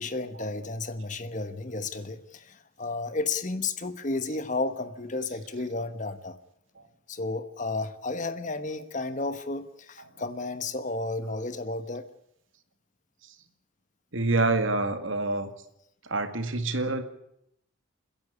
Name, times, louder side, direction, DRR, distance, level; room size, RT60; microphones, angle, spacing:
voice 1, 0.0-6.3 7.1-12.1, left 3 dB, 40° left, 11 dB, 1.2 m, -32 dB
voice 2, 14.1-15.5 16.0-17.0, right 2 dB, 75° right, 8 dB, 2.1 m, -27 dB
29.5 x 10.5 x 9.9 m, 0.75 s
head